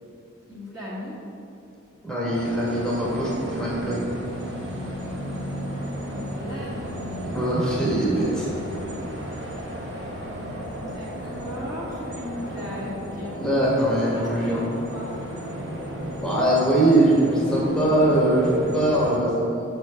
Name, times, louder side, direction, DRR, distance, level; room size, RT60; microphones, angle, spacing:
voice 1, 0.5-1.2 6.1-6.9 10.4-13.4 14.1-15.2, left 1 dB, 15° right, -8 dB, 1.3 m, -36 dB
voice 2, 2.0-4.1 7.2-8.5 13.4-14.6 16.2-19.6, right 1 dB, 5° left, -7 dB, 1.4 m, -22 dB
sound 1, 2.3-19.2, equal, 55° right, 1.3 m, -34 dB
6.4 x 4.6 x 6.4 m, 2.7 s
head